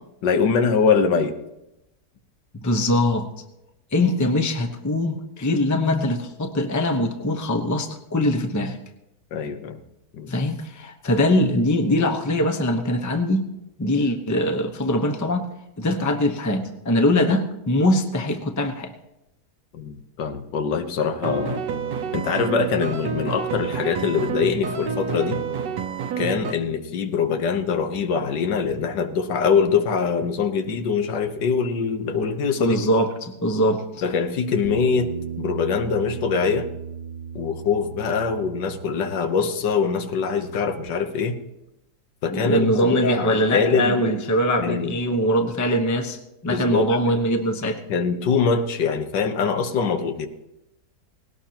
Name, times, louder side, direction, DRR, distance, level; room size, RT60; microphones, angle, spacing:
voice 1, 0.2-1.3 9.3-9.8 10.1-10.3 19.7-21.6 22.1-25.4 26.2-32.8 34.0-36.7 37.4-41.4 42.2-44.2 44.6-44.9 46.5-47.0 47.9-50.3, left 5 dB, 85° left, 8 dB, 1.6 m, -23 dB
voice 2, 2.6-3.3 3.9-8.8 10.3-13.5 13.8-15.5 15.8-18.9 32.6-34.0 42.3-47.8, left 1 dB, 15° left, 5 dB, 0.7 m, -22 dB
sound 1, 21.2-26.5, right 6 dB, 80° right, 1.5 m, -29 dB
Bass guitar, 34.6-40.9, right 6 dB, 45° right, 0.9 m, -36 dB
19.0 x 17.5 x 2.9 m, 0.90 s
omnidirectional pair, 1.9 m